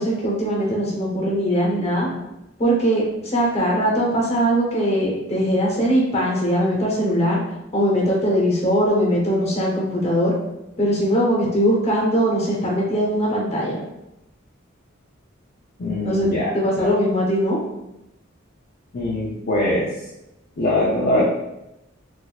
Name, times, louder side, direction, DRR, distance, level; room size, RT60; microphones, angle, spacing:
voice 1, 0.0-2.1 2.6-7.4 7.7-10.3 10.8-13.8 16.0-16.3 16.5-17.6, equal, 30° left, -3 dB, 0.9 m, -20 dB
voice 2, 15.8-16.5 16.8-16.9 18.9-19.9 20.6-21.2, left 1 dB, 50° left, -5 dB, 0.5 m, -22 dB
4.0 x 2.6 x 2.4 m, 0.90 s
head